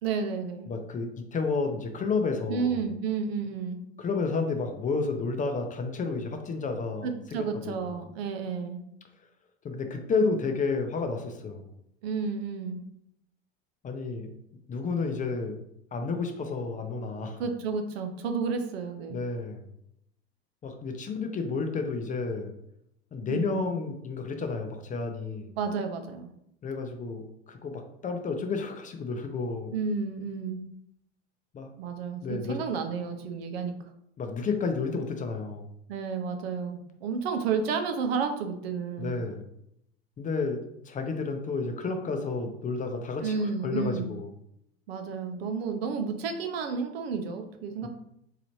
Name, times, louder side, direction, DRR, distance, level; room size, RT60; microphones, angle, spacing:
voice 1, 0.0-0.7 2.5-3.8 7.0-8.8 12.0-12.8 17.4-19.2 23.3-23.7 25.6-26.3 29.7-30.6 31.8-33.7 35.9-39.1 43.2-44.1 44.9-47.9, right 5 dB, 70° right, 6 dB, 0.7 m, -31 dB
voice 2, 0.7-2.8 4.0-7.9 9.6-11.7 13.8-14.3 14.7-15.5 15.9-17.4 19.1-19.6 20.6-22.6 23.1-25.5 26.6-29.7 31.5-31.7 32.2-32.6 34.2-35.7 39.0-39.4 40.2-40.6 40.9-44.3 47.8-47.9, left 4 dB, 25° left, 5 dB, 0.6 m, -31 dB
4.0 x 2.8 x 3.0 m, 0.76 s
hypercardioid pair, 90°, 31 cm